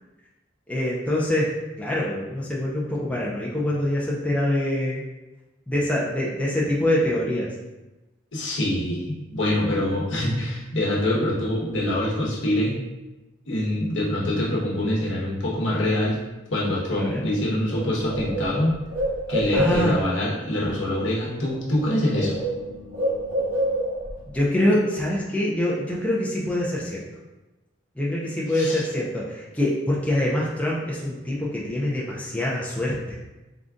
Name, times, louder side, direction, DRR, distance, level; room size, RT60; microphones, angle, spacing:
voice 1, 0.7-1.5 1.8-5.0 5.7-7.5 16.9-17.3 19.5-20.0 24.3-27.0 28.0-32.9, left 1 dB, 5° left, -6 dB, 0.5 m, -24 dB
voice 2, 8.3-12.7 13.5-16.2 16.5-18.8 19.3-22.4 28.5-28.8, left 1 dB, 65° left, -5 dB, 1.0 m, -25 dB
Bird, 17.3-17.4 17.7-20.2 21.3-21.5 21.8-24.2, right 1 dB, 85° right, 1.5 m, -27 dB
3.8 x 2.4 x 3.6 m, 1.1 s
head